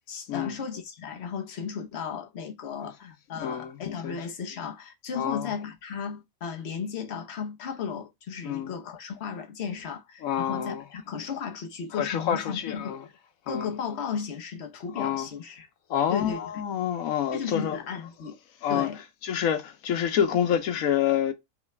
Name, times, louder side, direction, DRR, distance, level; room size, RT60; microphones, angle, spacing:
voice 1, 0.1-13.0 13.5-15.7 16.1-16.4 17.3-18.4 18.7-19.0, left 6 dB, 55° left, 1.2 m, -35 dB
voice 2, 3.4-4.2 5.1-5.5 8.4-8.7 10.2-10.8 11.9-13.1 13.5-13.7 14.9-15.3 15.9-17.8 18.6-18.9 19.2-21.3, left 9 dB, 90° left, 1.2 m, -27 dB
5.6 x 2.3 x 3.1 m
omnidirectional pair, 1.4 m